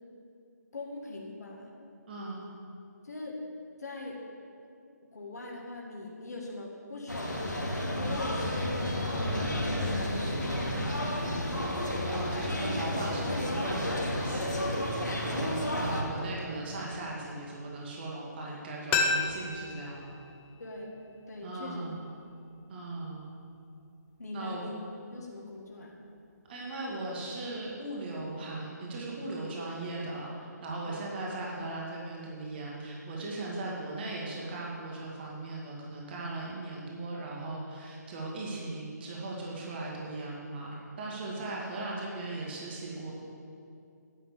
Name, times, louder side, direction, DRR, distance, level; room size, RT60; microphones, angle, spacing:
voice 1, 0.7-1.8 3.0-3.4 3.8-4.2 5.0-7.6 8.1-11.8 15.1-15.5 20.6-20.9 21.3-21.9 24.2-24.8 25.1-25.9 30.8-31.0, left 2 dB, 60° left, -1 dB, 2.0 m, -42 dB
voice 2, 2.1-2.5 8.0-8.2 12.1-14.6 15.2-20.2 21.4-22.1 22.7-23.3 24.3-24.6 26.5-43.1, right 2 dB, 35° right, -3 dB, 2.2 m, -38 dB
sound 1, 7.1-16.0, left 1 dB, 90° left, 2.5 m, -31 dB
sound 2, 18.9-21.7 22.0-22.1, left 4 dB, 15° left, 0.6 m, -33 dB
11.0 x 7.8 x 7.3 m, 2.5 s
figure-of-eight pair, 140°, 10 cm